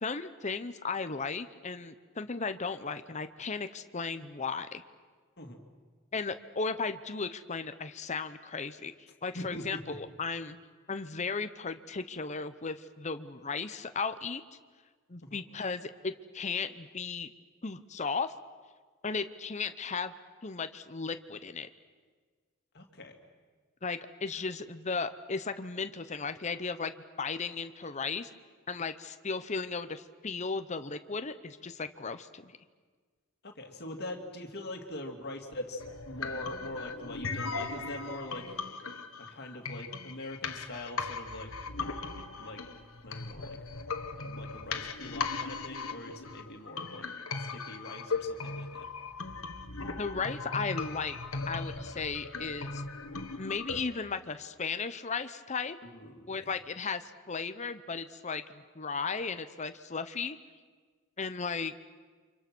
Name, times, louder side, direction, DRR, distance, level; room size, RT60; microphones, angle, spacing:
voice 1, 0.0-4.8 6.1-10.6 10.9-14.4 15.1-17.3 17.6-18.3 19.0-20.1 20.4-21.7 23.8-28.3 28.7-32.5 49.8-51.2 51.5-52.8 53.4-55.8 56.3-58.4 58.7-60.4 61.2-61.7, left 4 dB, 35° left, 10 dB, 0.8 m, -35 dB
voice 2, 9.3-10.0 15.2-15.4 22.7-23.2 33.4-38.6 39.2-41.5 42.4-42.6 43.0-43.6 44.2-47.1 47.4-48.9 55.8-56.6, left 1 dB, 50° left, 3 dB, 2.7 m, -43 dB
sound 1, 35.8-53.8, left 4 dB, 75° left, 1.7 m, -38 dB
30.0 x 25.5 x 6.2 m, 1.5 s
head